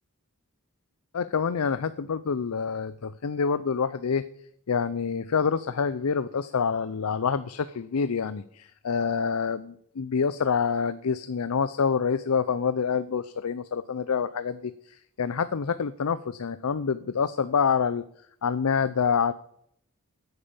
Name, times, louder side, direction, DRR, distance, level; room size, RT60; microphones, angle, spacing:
voice 1, 1.1-4.2 4.7-18.0 18.4-19.3, left 6 dB, 85° left, 14 dB, 0.5 m, -27 dB
9.7 x 8.8 x 7.2 m, 0.69 s
head